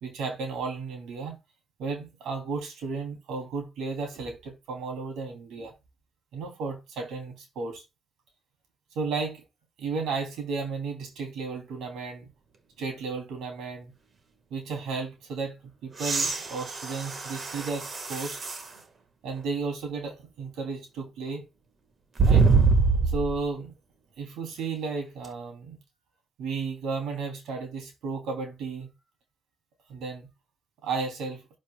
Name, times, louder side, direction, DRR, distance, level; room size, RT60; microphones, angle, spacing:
voice 1, 0.0-1.4 1.8-5.7 6.3-7.8 8.9-9.4 9.8-12.3 12.8-13.9 14.5-18.5 19.2-21.5 22.2-22.5 23.0-23.7 24.2-25.8 26.4-28.9 29.9-30.3 30.8-31.4, right 4 dB, 85° right, 2.7 m, -33 dB
sound 1, 15.9-18.7 19.4-19.5 22.2-23.4 25.2-25.3, right 4 dB, 40° right, 1.4 m, -24 dB
11.5 x 5.2 x 2.2 m
cardioid pair, 105°, 0 cm